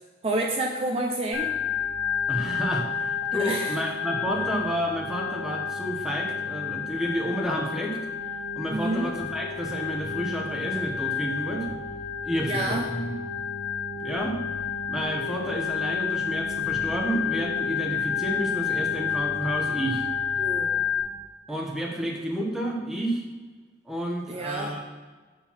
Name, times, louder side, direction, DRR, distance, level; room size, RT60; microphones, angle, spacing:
voice 1, 0.2-1.6 3.3-3.8 4.3-4.5 8.7-9.1 12.4-12.9 20.4-20.7 24.3-24.7, right 2 dB, 35° right, 0 dB, 0.6 m, -29 dB
Organ, 1.3-21.0, left 7 dB, 60° left, 2.2 m, -30 dB
voice 2, 2.3-8.0 8.6-11.7 12.2-13.1 14.0-14.4 14.9-20.1 21.5-23.2 23.9-24.8, equal, 5° right, -1 dB, 1.0 m, -30 dB
7.7 x 4.6 x 5.7 m, 1.4 s
head